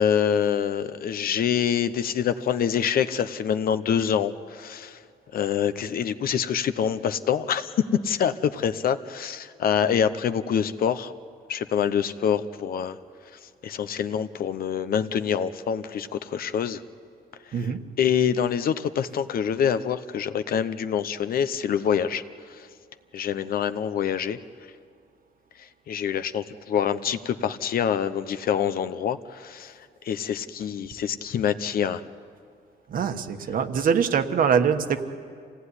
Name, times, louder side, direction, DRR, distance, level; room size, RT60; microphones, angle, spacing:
voice 1, 0.0-5.0 5.3-7.7 8.0-11.1 11.5-13.0 13.6-16.8 18.0-22.2 22.5-22.7 23.1-24.4 25.6-29.8 30.0-32.0, left 8 dB, 60° left, 12 dB, 0.9 m, -26 dB
voice 2, 32.9-35.0, right 7 dB, 55° right, 7 dB, 1.4 m, -23 dB
26.5 x 17.5 x 9.8 m, 2.2 s
cardioid pair, 150°, 17 cm